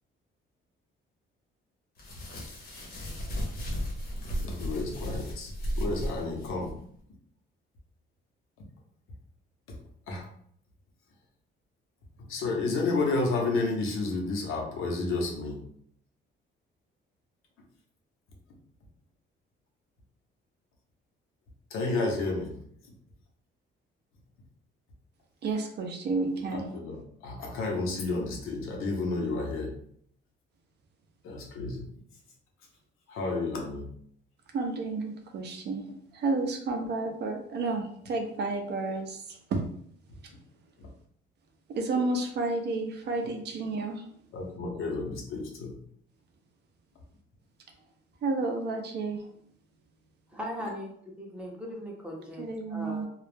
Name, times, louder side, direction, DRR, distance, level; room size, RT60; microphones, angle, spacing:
sound 1, 2.0-6.7, equal, 45° left, 0.7 m, -35 dB
voice 1, 4.2-5.5 5.8-6.8 9.7-9.8 10.1-10.3 12.3-15.6 21.7-22.6 26.5-29.7 31.2-31.9 33.1-33.9 40.8-40.9 44.3-45.7, left 3 dB, 80° left, 0 dB, 0.7 m, -31 dB
voice 2, 25.4-26.6 34.5-35.8 36.1-39.6 41.8-44.1 48.2-49.2 52.4-53.1, right 3 dB, 55° right, 3 dB, 0.5 m, -31 dB
voice 3, 50.3-53.1, equal, 5° right, -2 dB, 0.6 m, -39 dB
2.3 x 2.0 x 3.2 m, 0.64 s
cardioid pair, 145°, 21 cm